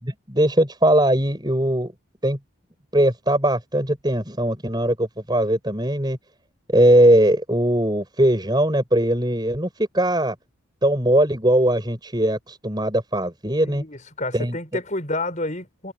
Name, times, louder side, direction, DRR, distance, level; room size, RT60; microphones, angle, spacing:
voice 1, 0.0-1.9 2.2-2.4 2.9-6.2 6.7-10.4 10.8-13.8 14.3-14.6, right 1 dB, 20° right, 6.7 m, -20 dB
voice 2, 13.6-15.9, left 2 dB, 35° left, 6.3 m, -29 dB
head